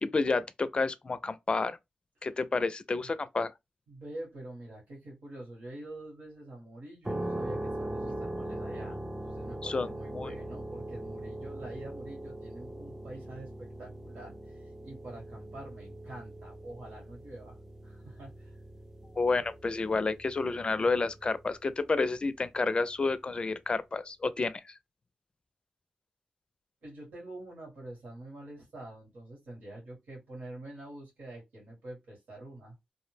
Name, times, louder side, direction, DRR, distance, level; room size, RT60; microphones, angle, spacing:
voice 1, 0.0-1.8 2.2-3.5 9.6-10.3 19.2-24.6, left 3 dB, 40° left, 0.4 m, -30 dB
voice 2, 3.9-17.6 17.8-18.6 26.8-32.7, right 1 dB, 90° right, 1.5 m, -46 dB
sound 1, 7.0-21.7, right 1 dB, 20° right, 0.4 m, -41 dB
2.6 x 2.0 x 3.2 m
cardioid pair, 60°, 3 cm